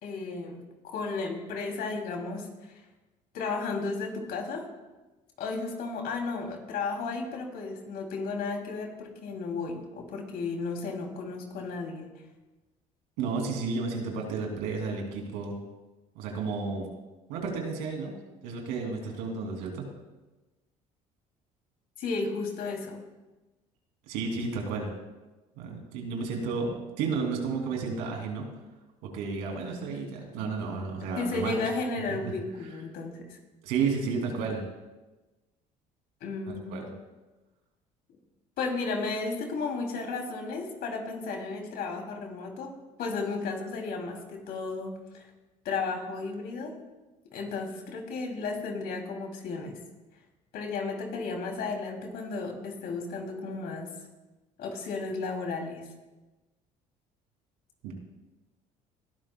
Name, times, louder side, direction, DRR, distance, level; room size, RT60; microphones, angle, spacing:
voice 1, 0.0-2.7 3.3-4.7 5.4-12.1 22.0-23.0 31.2-33.4 36.2-36.9 38.6-42.7 43.0-45.3 45.6-46.8 47.3-49.8 50.5-53.9 54.6-55.9, left 4 dB, 70° left, 2 dB, 2.9 m, -34 dB
voice 2, 13.2-15.6 16.1-16.9 17.3-18.1 18.4-19.8 24.1-24.9 25.6-28.4 29.0-31.6 33.6-34.6 36.7-36.9 57.8-57.9, right 4 dB, 80° right, 1 dB, 2.8 m, -32 dB
20.0 x 13.0 x 2.3 m, 1.1 s
supercardioid pair, 70°, 17 cm